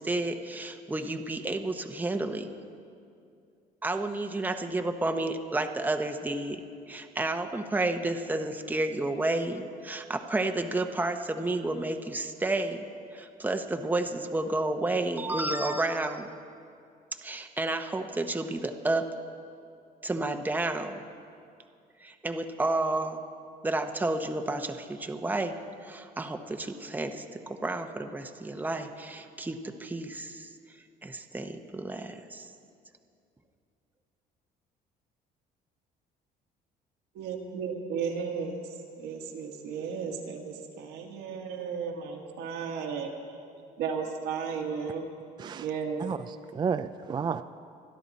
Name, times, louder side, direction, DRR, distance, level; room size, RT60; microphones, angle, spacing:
voice 1, 0.0-2.5 3.8-6.6 6.9-12.8 13.1-16.3 17.2-19.0 20.0-21.0 22.0-23.2 23.6-30.5 31.0-32.5, right 2 dB, 10° right, 5 dB, 0.9 m, -31 dB
voice 2, 37.1-43.1 43.8-45.1 45.5-46.1, right 6 dB, 90° right, 2 dB, 1.8 m, -34 dB
voice 3, 46.0-47.4, right 6 dB, 25° right, 10 dB, 0.3 m, -32 dB
25.5 x 10.5 x 4.2 m, 2.4 s
cardioid pair, 110°, 17 cm